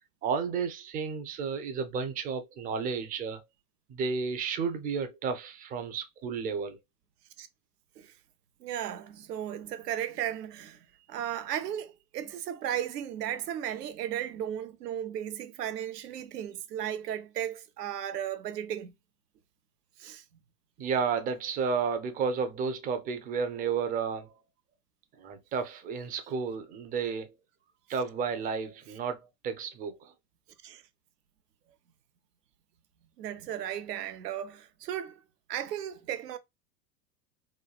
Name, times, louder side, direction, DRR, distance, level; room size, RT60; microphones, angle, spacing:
voice 1, 0.2-3.4 3.9-6.8 20.8-24.3 25.2-27.3 27.9-30.1, right 5 dB, 20° right, 0.4 m, -32 dB
voice 2, 8.6-18.9 20.0-20.2 30.6-30.8 33.2-35.2 35.5-36.4, right 10 dB, 75° right, 0.7 m, -35 dB
3.1 x 2.2 x 2.3 m
figure-of-eight pair, 85°, 48 cm